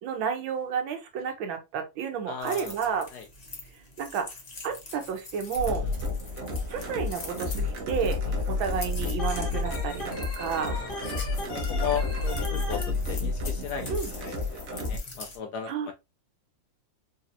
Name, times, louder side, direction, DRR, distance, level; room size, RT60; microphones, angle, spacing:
voice 1, 0.0-3.1 4.0-4.3 4.6-5.8 6.7-8.2 8.5-10.8 13.9-14.1 15.7-15.9, right 7 dB, 85° right, 1.6 m, -31 dB
voice 2, 2.3-2.7 3.1-3.3 5.8-5.9 10.6-11.0 11.4-13.9 14.2-15.9, left 7 dB, 75° left, 0.9 m, -36 dB
sound 1, 2.4-15.4, left 3 dB, 50° left, 0.4 m, -44 dB
sound 2, 5.5-15.0, left 3 dB, 55° right, 1.1 m, -31 dB
Organ, 9.2-12.9, left 2 dB, 35° left, 1.1 m, -38 dB
3.9 x 2.7 x 2.6 m
omnidirectional pair, 2.1 m